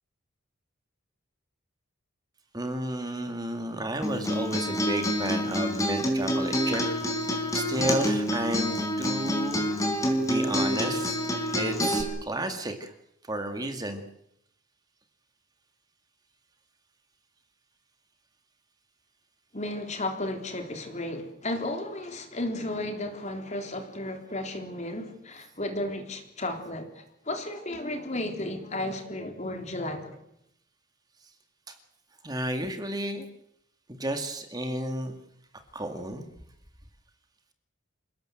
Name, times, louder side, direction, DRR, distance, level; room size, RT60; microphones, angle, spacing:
voice 1, 2.5-6.8 7.5-9.7 10.2-11.2 11.5-12.9 13.3-14.0 31.7-31.8 32.2-33.3 33.9-35.1 35.7-36.3, right 1 dB, 20° right, 2.3 m, -32 dB
Acoustic guitar, 4.0-12.0, equal, 15° left, 4.6 m, -27 dB
voice 2, 19.5-30.2, left 1 dB, 35° left, 3.6 m, -34 dB
28.0 x 18.0 x 7.8 m
head